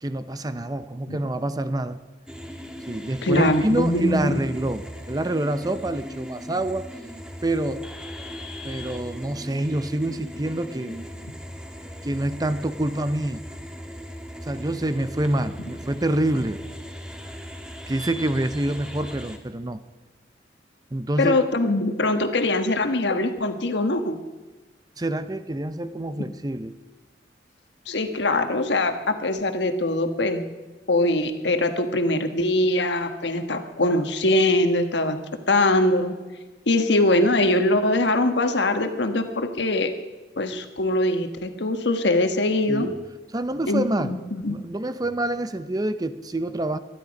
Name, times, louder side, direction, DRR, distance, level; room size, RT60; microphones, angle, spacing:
voice 1, 0.0-2.0 2.9-6.9 7.4-7.9 8.6-11.1 12.0-13.4 14.4-16.6 17.9-19.8 20.9-21.4 25.0-26.7 42.7-43.0 43.3-44.2 44.5-46.8, right 1 dB, 20° right, 11 dB, 0.6 m, -26 dB
sound 1, 2.3-19.4, equal, 5° right, 1.4 m, -39 dB
voice 2, 3.2-4.4 21.2-24.2 27.9-30.4 30.9-35.2 35.5-36.1 36.7-39.9 40.4-42.9 43.7-44.6, left 2 dB, 70° left, 7 dB, 1.4 m, -22 dB
23.5 x 11.0 x 5.3 m, 1.2 s
head